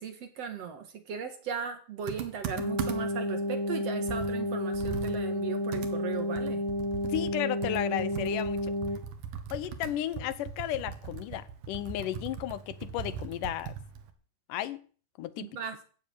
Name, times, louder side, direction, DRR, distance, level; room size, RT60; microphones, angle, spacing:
voice 1, 0.0-6.6 15.4-15.8, right 6 dB, 55° right, 2.3 m, -37 dB
Computer keyboard, 2.1-3.2 3.7-3.8 4.1-7.4 7.6-14.1, right 8 dB, 85° right, 3.2 m, -39 dB
sound 1, 2.5-9.0, left 1 dB, 20° left, 0.6 m, -31 dB
voice 2, 7.0-8.7 9.5-13.7 14.5-14.8 15.2-15.5, left 13 dB, 80° left, 2.3 m, -34 dB
15.0 x 7.4 x 8.6 m
omnidirectional pair, 3.8 m